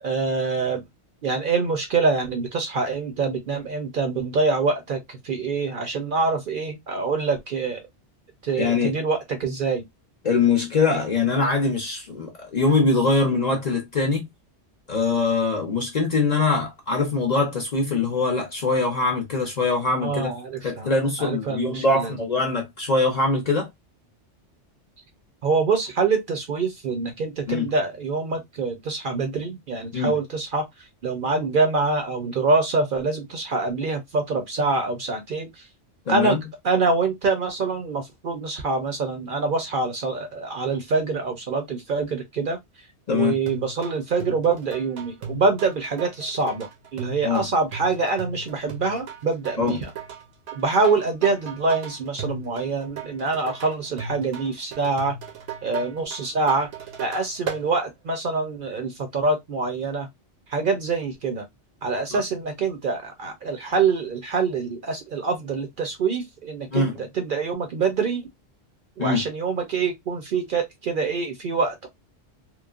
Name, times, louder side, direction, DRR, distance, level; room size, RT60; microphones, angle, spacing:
voice 1, 0.0-0.8 1.2-7.8 8.4-9.8 20.0-20.9 21.2-22.2 25.4-30.6 31.0-35.7 36.1-36.4 36.6-42.6 43.1-49.9 50.5-55.1 55.6-56.7 57.0-60.1 60.5-61.4 61.8-68.3 69.0-71.9, right 4 dB, 55° right, 0.6 m, -25 dB
voice 2, 8.6-8.9 10.2-14.3 14.9-20.3 20.6-23.7 27.5-27.7 29.9-30.1 36.1-36.4 43.1-43.4 47.2-47.4 49.6-49.8 62.1-62.2 66.7-67.0 69.0-69.2, left 3 dB, 45° left, 0.6 m, -23 dB
sound 1, 43.5-57.7, right 5 dB, 85° right, 1.0 m, -36 dB
3.0 x 2.1 x 2.3 m
omnidirectional pair, 1.2 m